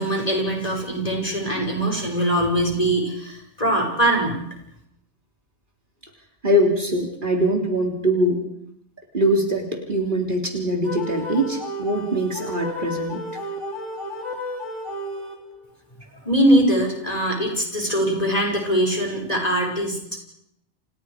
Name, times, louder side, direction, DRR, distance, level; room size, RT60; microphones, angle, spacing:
voice 1, 0.0-4.4 16.1-20.2, right 1 dB, 35° left, 1 dB, 6.0 m, -22 dB
voice 2, 6.4-8.5 9.1-13.2, equal, 45° right, 1 dB, 3.6 m, -22 dB
sound 1, 10.8-15.7, left 1 dB, 90° left, 3.5 m, -32 dB
29.5 x 28.0 x 5.0 m, 0.74 s
omnidirectional pair, 1.2 m